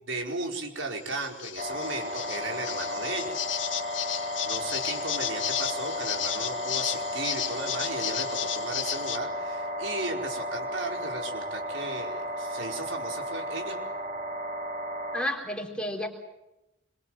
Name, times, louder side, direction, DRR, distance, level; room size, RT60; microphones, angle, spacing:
voice 1, 0.1-3.3 4.5-13.8, right 2 dB, 85° right, 1 dB, 5.0 m, -36 dB
sound 1, 0.9-9.2, left 11 dB, 80° left, 1.8 m, -34 dB
sound 2, 1.6-15.2, equal, 50° right, 6.0 m, -34 dB
voice 2, 15.1-16.1, equal, 5° left, 1 dB, 3.9 m, -31 dB
26.5 x 23.5 x 7.8 m, 0.92 s
head